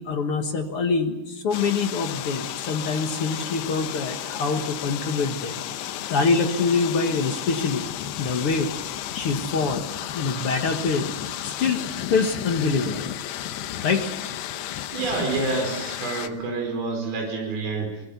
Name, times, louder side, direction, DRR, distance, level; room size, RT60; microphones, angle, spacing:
voice 1, 0.0-5.6 6.1-7.8 8.2-8.7 9.1-9.8 10.1-11.1 11.4-11.8 12.1-13.1 13.8-14.1, left 4 dB, 60° left, 5 dB, 1.5 m, -25 dB
sound 1, 1.5-16.3, left 12 dB, 85° left, 3.1 m, -33 dB
voice 2, 14.9-18.0, right 3 dB, 65° right, 2 dB, 6.8 m, -28 dB
24.0 x 22.0 x 7.1 m, 0.99 s
omnidirectional pair, 4.6 m